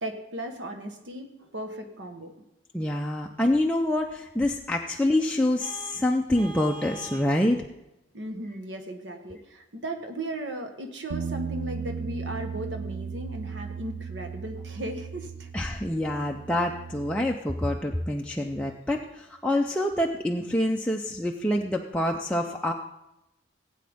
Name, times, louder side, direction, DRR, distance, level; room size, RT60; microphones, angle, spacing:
voice 1, 0.0-2.3 8.1-15.5, right 1 dB, 70° right, 5 dB, 1.2 m, -36 dB
voice 2, 2.7-7.6 15.5-22.7, left 1 dB, 5° left, 0 dB, 0.5 m, -26 dB
Vehicle horn car horn honking, 5.6-7.4, right 2 dB, 40° right, 1.2 m, -43 dB
Bass guitar, 11.1-17.4, right 6 dB, 85° right, 0.4 m, -36 dB
16.5 x 8.5 x 3.5 m, 0.89 s
head